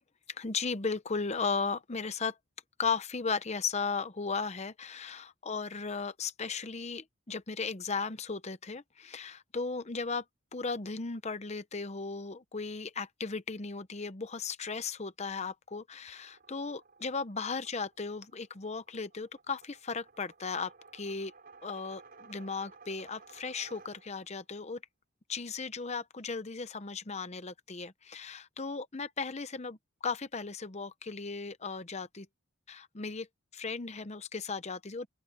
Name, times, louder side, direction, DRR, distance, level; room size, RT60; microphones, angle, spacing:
voice 1, 0.3-2.4 2.8-10.2 10.5-21.3 21.6-24.8 25.3-29.8 30.0-32.3 32.7-33.3 33.5-35.1, left 4 dB, 30° left, 0.7 m, -36 dB
sound 1, 16.1-24.4, right 4 dB, 45° right, 4.8 m, -57 dB
open air
head